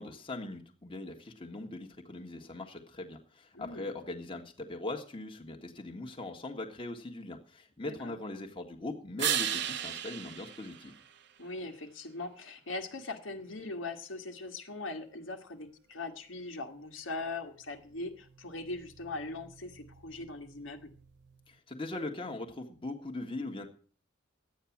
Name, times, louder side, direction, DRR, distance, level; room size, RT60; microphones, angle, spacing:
voice 1, 0.0-10.9 21.5-23.7, left 2 dB, 25° left, 2 dB, 1.7 m, -40 dB
voice 2, 3.5-3.9 7.8-8.1 11.4-20.9, left 2 dB, 80° left, 4 dB, 1.9 m, -40 dB
sound 1, 9.2-11.7 17.5-21.5, right 9 dB, 60° right, 0.9 m, -38 dB
12.0 x 9.2 x 7.3 m, 0.43 s
head